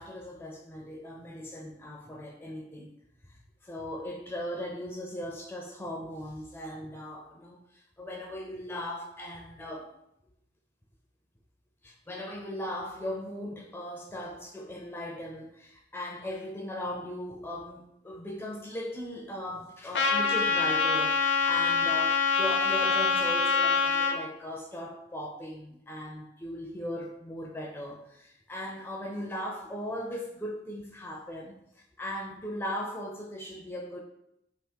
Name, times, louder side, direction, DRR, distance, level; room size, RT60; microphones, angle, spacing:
voice 1, 0.0-2.9 3.3-9.9 11.8-34.0, left 1 dB, 10° left, 0 dB, 0.4 m, -38 dB
Trumpet, 19.9-24.1, left 5 dB, 70° left, 0.5 m, -25 dB
3.5 x 3.0 x 4.4 m, 0.81 s
head